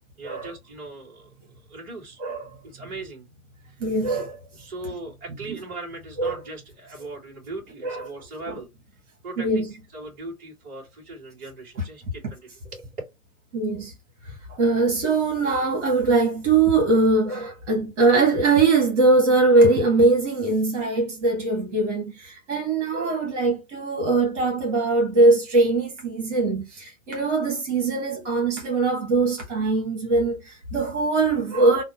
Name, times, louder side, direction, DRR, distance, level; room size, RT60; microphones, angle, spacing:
voice 1, 0.2-1.3 1.7-2.2 2.7-3.2 3.7-3.8 4.6-8.7 9.2-9.6 9.9-12.9, right 2 dB, 20° right, 2.2 m, -39 dB
voice 2, 2.2-2.6 3.8-4.3 6.2-6.3 7.8-8.0 8.4-8.5 9.4-9.6 13.5-13.9 14.2-31.8, right 3 dB, 55° right, 1.6 m, -21 dB
3.3 x 2.2 x 4.2 m
hypercardioid pair, 130°, 42 cm